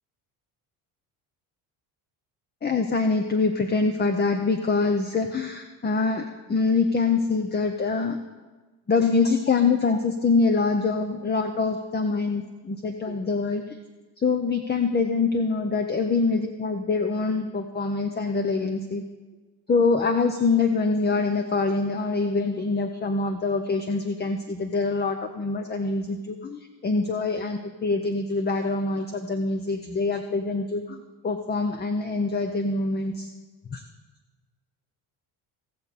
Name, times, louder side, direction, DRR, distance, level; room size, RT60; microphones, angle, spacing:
voice 1, 2.6-8.2 8.9-13.8 14.2-19.0 19.7-33.3 33.7-33.8, left 4 dB, 25° left, 7 dB, 0.8 m, -25 dB
17.5 x 6.8 x 4.2 m, 1.3 s
supercardioid pair, 80°, 43 cm